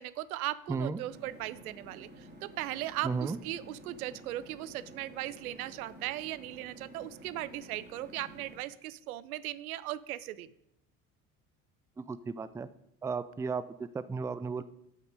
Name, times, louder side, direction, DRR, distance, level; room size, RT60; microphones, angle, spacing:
voice 1, 0.0-10.5, right 14 dB, 80° right, 17 dB, 0.6 m, -38 dB
voice 2, 0.7-1.0 3.0-3.4 12.0-12.7 13.0-14.6, right 4 dB, 5° right, 14 dB, 0.4 m, -34 dB
sound 1, 1.1-8.6, right 1 dB, 25° right, 2.8 m, -52 dB
8.2 x 7.4 x 5.2 m, 0.80 s
hypercardioid pair, 60°, 43 cm